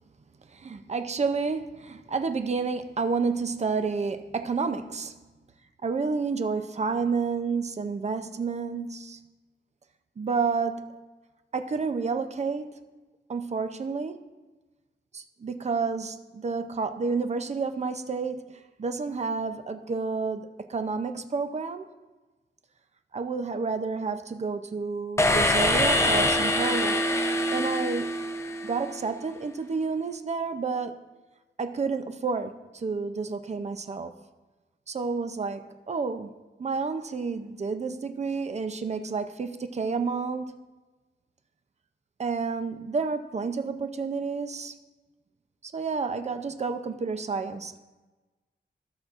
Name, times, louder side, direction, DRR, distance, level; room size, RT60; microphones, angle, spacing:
voice 1, 0.5-5.2 5.8-9.3 10.2-11.0 11.5-12.8 13.3-14.3 15.1-21.9 23.1-27.1 27.5-28.2 28.6-30.9 31.6-34.1 34.9-35.6 35.9-36.3 36.6-40.6 42.2-44.8 45.6-47.8, right 4 dB, 35° right, 8 dB, 0.5 m, -30 dB
sound 1, 25.2-29.0, left 1 dB, 15° left, 0.5 m, -24 dB
15.5 x 6.1 x 2.5 m, 1.2 s
wide cardioid pair, 180°, 20 cm